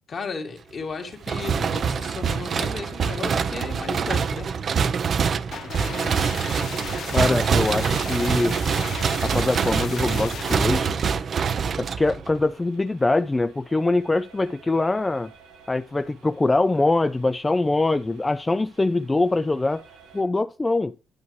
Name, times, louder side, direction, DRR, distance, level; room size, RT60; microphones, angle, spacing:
voice 1, 0.1-4.5, left 4 dB, 50° left, 2.0 m, -34 dB
sound 1, 0.8-20.2, right 5 dB, 90° right, 3.6 m, -52 dB
sound 2, 1.2-12.4, right 6 dB, 50° right, 0.6 m, -25 dB
sound 3, 5.5-10.6, left 9 dB, 65° left, 0.5 m, -36 dB
voice 2, 7.1-8.6 9.2-11.0 11.8-15.3 15.7-19.8 20.1-20.9, left 2 dB, 20° left, 0.4 m, -23 dB
9.6 x 8.2 x 3.1 m
cardioid pair, 90°, 0 cm